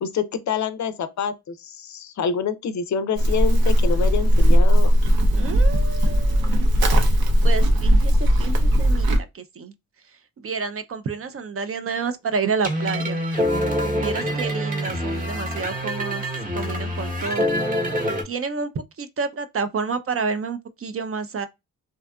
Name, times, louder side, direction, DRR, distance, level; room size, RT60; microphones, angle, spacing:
voice 1, 0.0-4.9 14.0-14.4, left 6 dB, 50° left, 0.5 m, -27 dB
Livestock farm animals working animals, 3.2-9.2, equal, 75° right, 0.7 m, -17 dB
voice 2, 5.3-6.7 7.4-9.7 10.4-13.2 13.9-16.3 16.5-17.5 18.2-21.5, right 5 dB, 40° right, 0.4 m, -29 dB
sound 1, 12.6-18.2, equal, 20° right, 0.9 m, -25 dB
2.7 x 2.3 x 2.2 m
cardioid pair, 65°, 36 cm